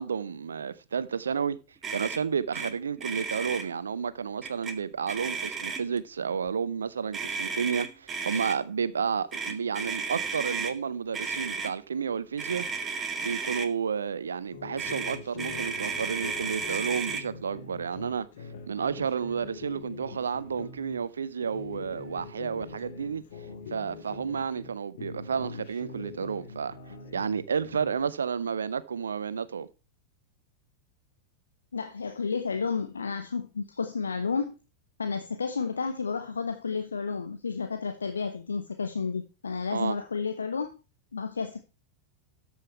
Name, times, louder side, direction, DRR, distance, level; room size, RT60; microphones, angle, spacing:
voice 1, 0.0-1.6 1.9-12.7 13.2-18.3 18.7-23.2 23.7-26.8 27.1-29.7 39.7-40.0, right 6 dB, 70° right, 0.7 m, -31 dB
Motor vehicle (road), 1.8-2.2 2.5-2.7 3.0-3.6 4.4-4.7 5.1-6.0 7.1-8.6 9.3-10.7 11.1-11.7 12.4-13.7 14.8-17.2, right 5 dB, 20° right, 1.3 m, -33 dB
sound 1, 14.5-21.0 21.4-24.7 25.0-28.1, left 5 dB, 55° left, 2.0 m, -43 dB
voice 2, 31.7-34.5 35.0-40.8 41.1-41.6, left 5 dB, 75° left, 0.8 m, -31 dB
13.5 x 5.7 x 4.5 m
figure-of-eight pair, 90°, 0 cm